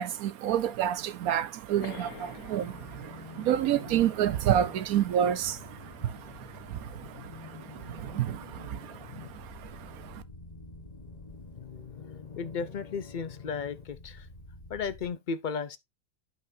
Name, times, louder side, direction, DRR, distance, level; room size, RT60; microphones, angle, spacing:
voice 1, 0.0-10.2, right 10 dB, 85° right, 1.2 m, -30 dB
sound 1, 1.4-15.1, left 4 dB, 30° left, 1.3 m, -47 dB
sound 2, 1.8-7.0, left 6 dB, 90° left, 1.7 m, -51 dB
voice 2, 12.4-14.3 14.7-15.8, left 5 dB, 50° left, 0.6 m, -34 dB
11.0 x 5.6 x 2.7 m
omnidirectional pair, 1.5 m